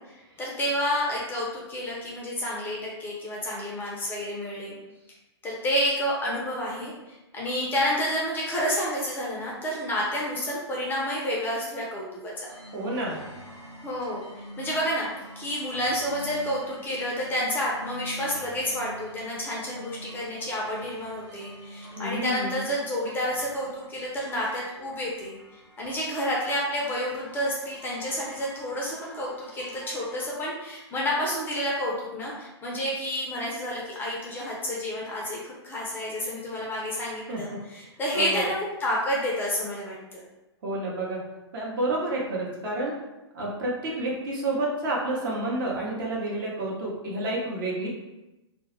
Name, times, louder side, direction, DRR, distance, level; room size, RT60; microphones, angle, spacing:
voice 1, 0.4-4.8 5.4-12.5 13.8-14.2 14.6-15.1 15.4-38.5 38.8-40.2, equal, 15° left, -4 dB, 0.4 m, -30 dB
sound 1, 12.5-30.3, equal, 85° right, 0.9 m, -46 dB
voice 2, 12.7-13.2 22.0-22.6 37.3-37.6 38.1-38.5 40.6-41.2 41.5-42.9 43.3-47.9, right 2 dB, 50° right, -3 dB, 0.8 m, -29 dB
2.2 x 2.0 x 3.0 m, 1.0 s
figure-of-eight pair, 120°, 15 cm